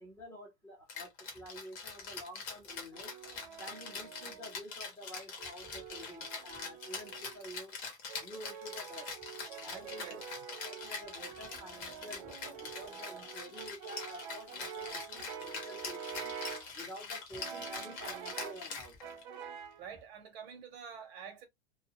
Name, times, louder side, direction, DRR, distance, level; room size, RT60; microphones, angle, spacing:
voice 1, 0.0-3.1 3.6-7.8 8.2-9.1 9.6-10.2 10.6-16.3 16.7-19.0, equal, 5° left, 0.9 m, -50 dB
Rattle (instrument), 0.9-19.4, left 5 dB, 35° left, 0.9 m, -44 dB
Brass instrument, 2.7-4.6 5.4-7.4 8.1-16.8 17.3-18.7 19.0-19.8, right 8 dB, 45° right, 0.4 m, -47 dB
voice 2, 9.9-10.2 19.8-21.5, right 7 dB, 65° right, 1.1 m, -47 dB
2.4 x 2.3 x 2.8 m
supercardioid pair, 165°, 34 cm